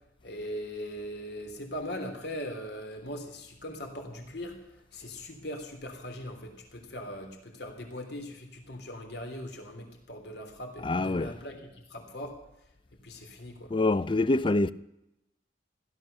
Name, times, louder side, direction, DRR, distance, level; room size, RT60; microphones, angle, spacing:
voice 1, 0.2-4.6 4.9-12.4 13.0-13.7, equal, 65° left, 3.2 m, -40 dB
voice 2, 10.8-11.3 13.7-14.7, left 2 dB, 30° left, 0.5 m, -25 dB
16.0 x 12.0 x 6.7 m
head